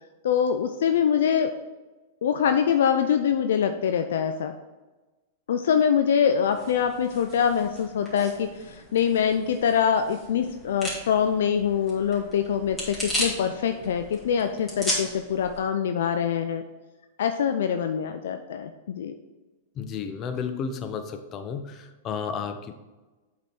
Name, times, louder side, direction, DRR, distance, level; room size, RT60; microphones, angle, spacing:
voice 1, 0.2-1.5 2.2-4.5 5.5-16.6 17.2-19.1, left 8 dB, 65° left, 8 dB, 0.4 m, -24 dB
sound 1, 6.4-15.6, equal, 15° left, 2.7 m, -36 dB
voice 2, 19.8-22.7, left 6 dB, 30° left, 8 dB, 0.8 m, -32 dB
8.0 x 5.0 x 4.3 m, 1.2 s
figure-of-eight pair, 100°, 0 cm